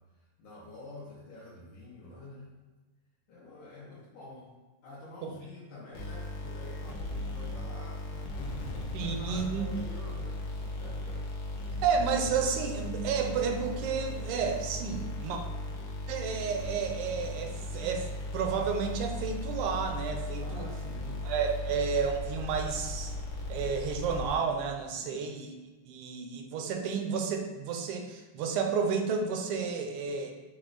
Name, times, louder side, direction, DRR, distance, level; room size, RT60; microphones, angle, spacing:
voice 1, 0.4-2.5 3.3-4.5 4.8-11.3 20.4-21.2 21.6-21.8 25.0-25.3, left 2 dB, 75° left, -7 dB, 1.5 m, -48 dB
sound 1, 5.9-24.7, left 1 dB, 90° left, 1.7 m, -37 dB
voice 2, 8.9-9.7 11.8-15.4 16.1-20.6 21.2-23.1 23.5-25.5 25.9-30.3, right 6 dB, 80° right, 4 dB, 1.5 m, -31 dB
5.9 x 2.0 x 3.8 m, 1.2 s
omnidirectional pair, 2.4 m